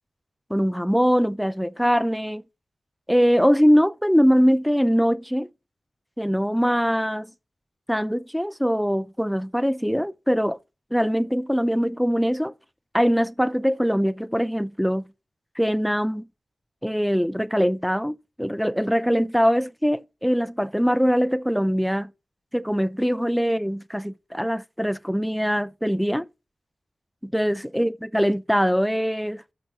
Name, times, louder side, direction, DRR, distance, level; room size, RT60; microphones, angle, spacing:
voice 1, 0.5-2.4 3.1-5.5 6.2-7.3 7.9-10.6 10.9-12.5 12.9-15.1 15.6-16.3 16.8-22.1 22.5-26.3 27.2-29.4, equal, ahead, 0.5 m, -22 dB
6.7 x 6.1 x 5.9 m
wide cardioid pair, 100°, 0 cm